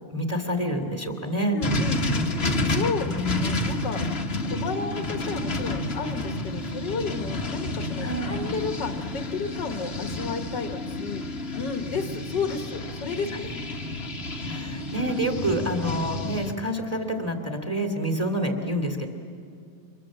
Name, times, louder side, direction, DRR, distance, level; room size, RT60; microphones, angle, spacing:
voice 1, 0.1-1.6 3.0-3.5 8.0-8.4 14.4-19.1, equal, 10° right, 4 dB, 2.5 m, -28 dB
voice 2, 1.5-2.3 2.6-4.0 4.4-11.2 11.5-13.5, left 5 dB, 70° left, 6 dB, 2.0 m, -32 dB
sound 1, 1.6-16.5, left 1 dB, 35° left, 1.5 m, -30 dB
30.0 x 26.0 x 7.6 m, 2.3 s
omnidirectional pair, 2.0 m